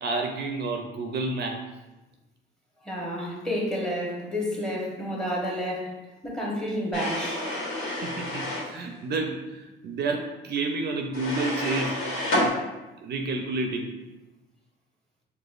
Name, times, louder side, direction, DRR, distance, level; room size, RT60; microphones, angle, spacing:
voice 1, 0.0-1.7 8.0-12.0 12.4-12.6 13.0-14.0, right 3 dB, 55° right, 3 dB, 0.4 m, -30 dB
voice 2, 2.8-6.0 6.2-7.4, equal, 5° left, -3 dB, 1.0 m, -30 dB
sound 1, 6.9-8.7 11.1-12.5, left 1 dB, 85° left, 1.2 m, -29 dB
4.8 x 2.2 x 2.4 m, 1.1 s
cardioid pair, 90°, 20 cm